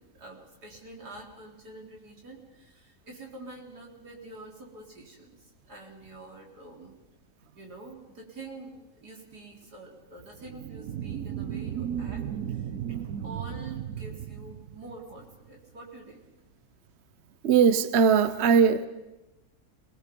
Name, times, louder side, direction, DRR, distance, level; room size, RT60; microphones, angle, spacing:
voice 1, 0.0-6.9 7.5-16.2, right 2 dB, 80° right, 0 dB, 4.4 m, -46 dB
sound 1, 10.4-15.3, right 9 dB, 65° right, 1.3 m, -35 dB
voice 2, 17.4-18.9, right 6 dB, 50° right, 13 dB, 1.0 m, -20 dB
27.5 x 20.5 x 5.3 m, 1.0 s
omnidirectional pair, 1.7 m